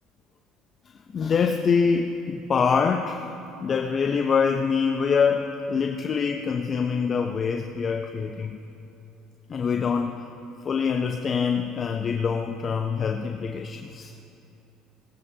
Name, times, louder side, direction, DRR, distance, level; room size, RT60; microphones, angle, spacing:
voice 1, 1.1-3.3 3.6-8.6 9.5-10.3 10.6-14.1, left 6 dB, 40° left, 5 dB, 0.6 m, -25 dB
18.0 x 15.0 x 2.8 m, 2.8 s
supercardioid pair, 95°, 0 cm